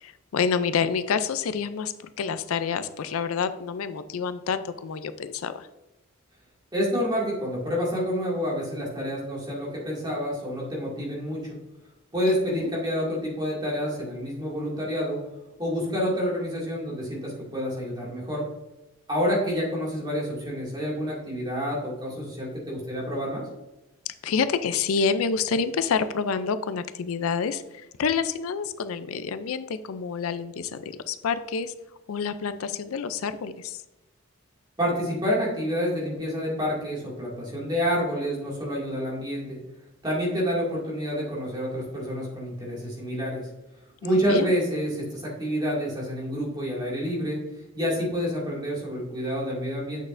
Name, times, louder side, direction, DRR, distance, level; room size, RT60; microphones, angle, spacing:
voice 1, 0.0-5.7 12.3-12.7 24.1-31.7 32.1-33.8 44.0-44.5, left 6 dB, 90° left, 12 dB, 0.4 m, -28 dB
voice 2, 6.7-11.6 12.1-15.2 15.6-18.4 19.1-23.5 34.8-39.6 40.0-43.5 44.0-47.4 47.7-50.0, equal, 20° right, -5 dB, 2.2 m, -28 dB
8.2 x 6.4 x 2.5 m, 1.0 s
head